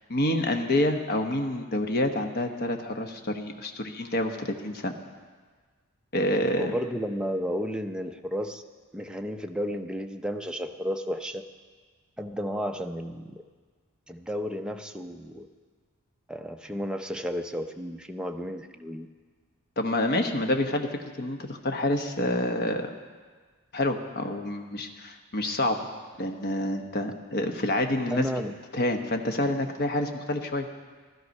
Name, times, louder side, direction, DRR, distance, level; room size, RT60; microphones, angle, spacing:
voice 1, 0.1-4.9 6.1-6.7 19.8-22.9 23.7-25.9 26.2-28.2 28.7-30.7, left 1 dB, 45° left, 5 dB, 1.1 m, -28 dB
voice 2, 6.6-8.6 8.9-11.4 12.2-13.4 14.1-15.5 16.3-19.1 28.1-28.5, equal, 5° right, 4 dB, 0.6 m, -32 dB
15.5 x 12.0 x 5.4 m, 1.5 s
head